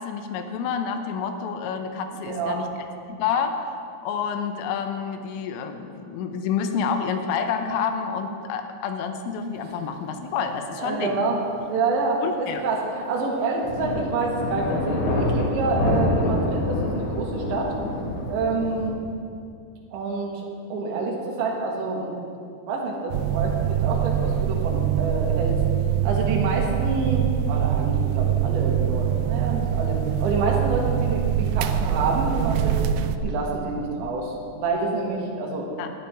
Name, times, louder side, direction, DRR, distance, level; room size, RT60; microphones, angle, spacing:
voice 1, 0.0-2.7 3.1-3.7 4.0-11.2 12.2-12.7 35.8-35.9, left 6 dB, 80° left, 6 dB, 3.3 m, -28 dB
voice 2, 2.1-2.6 10.8-11.4 11.6-17.7 18.3-19.0 19.9-20.4 20.7-22.1 22.7-25.6 26.0-35.7, right 3 dB, 65° right, -2 dB, 3.8 m, -27 dB
sound 1, 13.6-18.9, left 1 dB, 65° left, 3.5 m, -26 dB
sound 2, 23.1-33.2, right 10 dB, 85° right, 2.6 m, -24 dB
19.0 x 11.5 x 3.5 m, 2.4 s
omnidirectional pair, 5.9 m